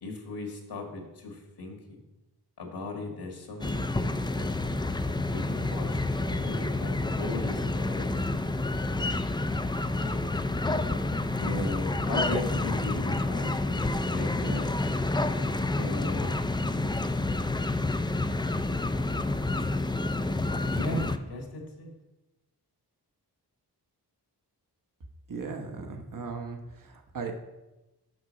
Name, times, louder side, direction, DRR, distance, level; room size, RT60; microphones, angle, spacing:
voice 1, 0.0-2.0 2.6-4.6 5.3-8.1 9.9-10.2 11.3-14.7 15.7-16.5 20.6-21.9, left 2 dB, 80° left, 1 dB, 1.8 m, -37 dB
sound 1, 3.6-21.2, left 2 dB, 10° left, 0.4 m, -29 dB
voice 2, 25.3-27.3, right 5 dB, 55° right, 3 dB, 1.1 m, -37 dB
6.2 x 6.0 x 6.3 m, 1.0 s
wide cardioid pair, 85°, 39 cm